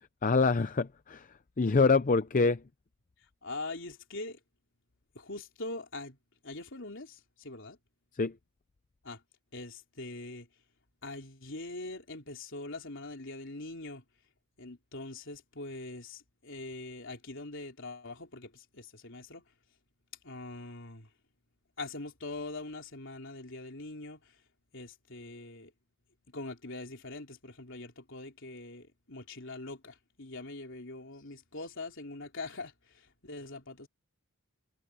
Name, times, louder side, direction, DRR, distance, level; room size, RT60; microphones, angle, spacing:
voice 1, 0.2-1.3 1.6-2.6 8.2-8.3, left 4 dB, 35° left, 0.5 m, -25 dB
voice 2, 3.4-4.4 5.1-6.2 6.4-7.8 9.0-9.2 9.5-10.5 11.0-14.0 14.6-19.4 20.2-21.1 21.8-24.3 24.7-25.7 26.3-33.9, left 2 dB, 55° left, 3.9 m, -43 dB
head